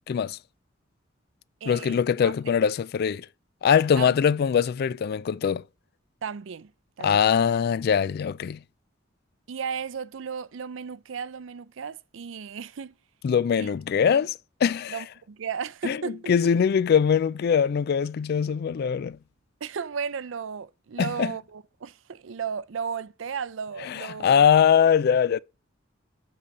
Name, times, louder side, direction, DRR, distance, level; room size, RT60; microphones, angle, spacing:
voice 1, 0.1-0.4 1.7-3.3 3.6-5.6 7.0-8.6 13.2-15.0 15.8-16.0 16.3-19.2 21.0-21.3 23.8-25.4, left 7 dB, 50° left, 0.3 m, -22 dB
voice 2, 1.6-2.3 4.0-4.1 6.2-6.7 7.0-7.2 9.5-12.9 13.6-13.7 14.9-16.3 19.6-24.4, right 6 dB, 70° right, 0.5 m, -35 dB
8.3 x 4.0 x 6.4 m
head